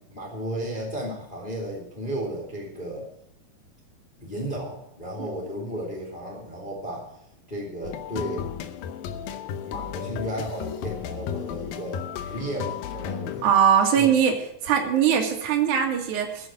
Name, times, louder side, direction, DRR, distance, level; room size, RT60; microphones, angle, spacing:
voice 1, 0.1-3.1 4.2-7.1 7.5-8.5 9.6-13.4 13.9-14.1, right 1 dB, 15° left, -2 dB, 2.9 m, -34 dB
sound 1, 7.8-13.5, left 8 dB, 85° left, 2.6 m, -34 dB
voice 2, 13.4-14.3 14.6-16.5, right 8 dB, 60° right, 1 dB, 3.2 m, -21 dB
15.5 x 7.8 x 7.6 m, 0.75 s
omnidirectional pair, 4.1 m